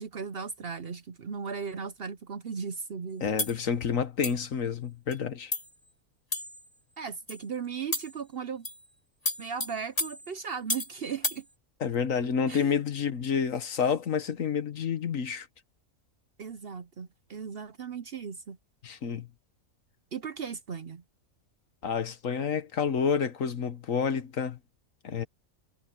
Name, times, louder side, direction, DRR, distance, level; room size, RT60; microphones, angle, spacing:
voice 1, 0.0-3.2 7.0-8.7 9.4-11.4 12.5-12.7 16.4-18.6 20.1-21.0, right 6 dB, 50° right, 0.8 m, -37 dB
voice 2, 3.2-5.5 11.8-15.5 18.8-19.3 21.8-24.6 25.0-25.3, left 6 dB, 65° left, 1.6 m, -29 dB
sound 1, 3.4-3.6 4.2-4.5 5.1-5.2 5.5-5.7 6.3-6.7 7.3-7.4 7.9-8.2 8.6-8.9 9.3-11.0 11.2-11.4, left 2 dB, 25° left, 2.9 m, -33 dB
omnidirectional pair, 1.5 m